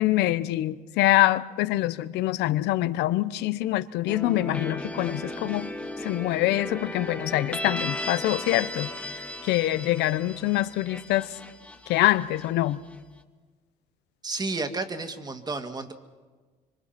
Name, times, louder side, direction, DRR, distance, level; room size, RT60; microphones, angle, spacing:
voice 1, 0.0-5.7 6.0-8.9 9.5-11.3 11.9-12.8, left 15 dB, 85° left, 0.9 m, -25 dB
sound 1, 4.1-12.9, left 1 dB, 10° left, 1.7 m, -36 dB
voice 2, 14.2-15.9, right 3 dB, 25° right, 2.0 m, -31 dB
25.5 x 25.5 x 5.9 m
cardioid pair, 110°, 17 cm